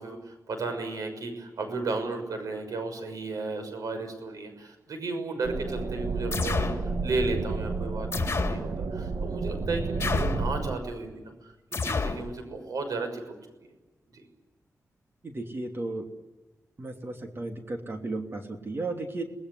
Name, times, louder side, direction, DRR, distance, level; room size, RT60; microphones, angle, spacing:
voice 1, 0.0-6.7 7.0-13.2 14.1-14.2, right 3 dB, 85° right, 7 dB, 6.4 m, -34 dB
sound 1, 5.4-10.8, right 3 dB, 65° right, 1.8 m, -31 dB
sound 2, 6.3-6.8 8.1-8.7 10.0-10.5 11.7-12.2, left 4 dB, 45° left, 3.7 m, -29 dB
voice 2, 15.2-16.1 16.8-19.2, right 2 dB, 40° right, 4 dB, 3.0 m, -34 dB
28.5 x 20.0 x 9.9 m, 1.1 s
wide cardioid pair, 95°, 6 cm